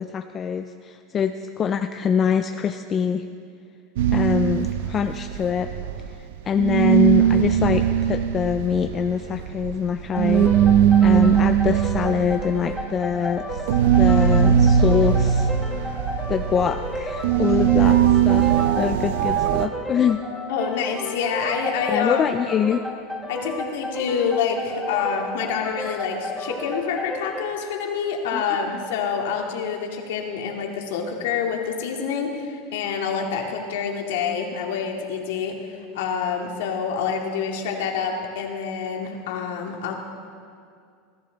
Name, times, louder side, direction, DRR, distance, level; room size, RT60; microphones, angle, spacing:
voice 1, 0.0-3.2 4.1-5.7 6.5-10.5 11.0-13.6 14.0-15.5 16.3-20.2 21.9-22.8 28.3-28.4 28.7-28.8, left 7 dB, 25° left, 8 dB, 0.4 m, -24 dB
sound 1, 4.0-6.3 6.6-19.7, right 9 dB, 80° right, 0.7 m, -20 dB
sound 2, 10.1-27.6, left 1 dB, ahead, 1.5 m, -33 dB
voice 2, 20.5-22.4 23.3-39.9, left 6 dB, 80° left, 1 dB, 2.4 m, -27 dB
21.5 x 13.5 x 4.0 m, 2.3 s
supercardioid pair, 145°, 0 cm